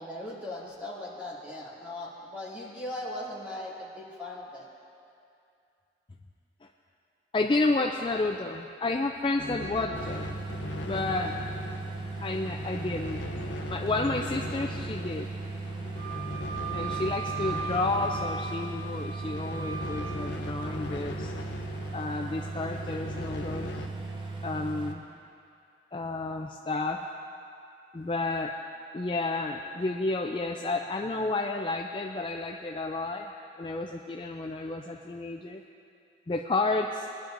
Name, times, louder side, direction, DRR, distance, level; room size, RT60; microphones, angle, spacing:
voice 1, 0.0-4.7, left 1 dB, 10° right, -8 dB, 2.4 m, -39 dB
voice 2, 7.3-10.3 10.9-11.4 12.2-13.2 13.7-15.3 16.7-21.3 21.9-23.7 24.4-25.0 25.9-27.0 27.9-28.5 28.9-33.3 33.6-35.6 36.3-37.1, left 2 dB, 30° left, 2 dB, 0.3 m, -31 dB
sound 1, 9.4-23.9, left 2 dB, 85° left, 0.6 m, -40 dB
sound 2, 9.9-24.9, right 3 dB, 30° right, 0.7 m, -37 dB
Wind instrument woodwind instrument, 16.0-20.2, right 6 dB, 65° right, 1.4 m, -38 dB
20.5 x 10.5 x 2.6 m, 2.5 s
head